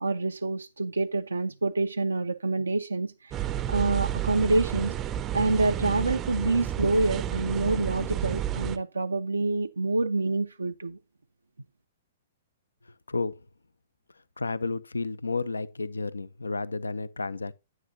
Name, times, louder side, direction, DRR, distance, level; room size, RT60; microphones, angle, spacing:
voice 1, 0.0-5.0 5.3-11.0, right 2 dB, 75° right, 0.5 m, -27 dB
sound 1, 3.3-8.8, right 11 dB, 20° right, 0.5 m, -31 dB
voice 2, 13.1-13.4 14.4-17.5, left 3 dB, 75° left, 0.6 m, -31 dB
9.6 x 9.2 x 2.7 m
figure-of-eight pair, 115°, 0 cm